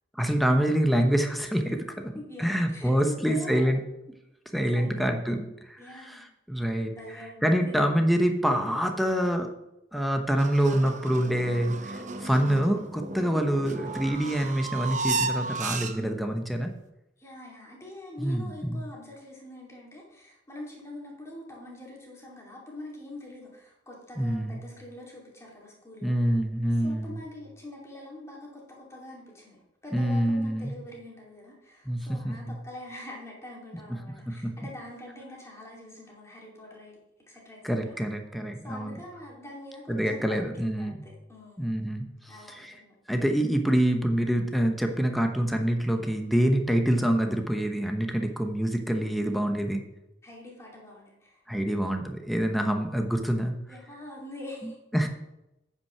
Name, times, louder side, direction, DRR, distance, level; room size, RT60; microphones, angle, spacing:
voice 1, 0.1-2.1 2.4-3.8 4.5-5.8 6.1-6.2 6.5-6.9 7.4-9.5 9.9-16.7 18.2-18.8 24.2-24.6 26.0-27.2 29.9-30.7 31.9-32.6 34.3-34.5 37.6-39.0 39.9-41.0 41.6-42.1 42.5-42.7 43.1-49.8 51.5-53.5 54.9-55.1, equal, ahead, 4 dB, 0.9 m, -26 dB
voice 2, 2.1-3.8 4.7-5.0 5.8-6.2 6.6-7.9 17.2-26.2 26.8-37.0 37.3-38.0 38.6-41.7 42.3-42.9 50.2-51.4 53.7-54.8, left 1 dB, 15° left, -3 dB, 2.6 m, -44 dB
sound 1, 10.4-16.3, right 4 dB, 45° right, 0.7 m, -34 dB
8.9 x 5.7 x 5.9 m, 0.88 s
head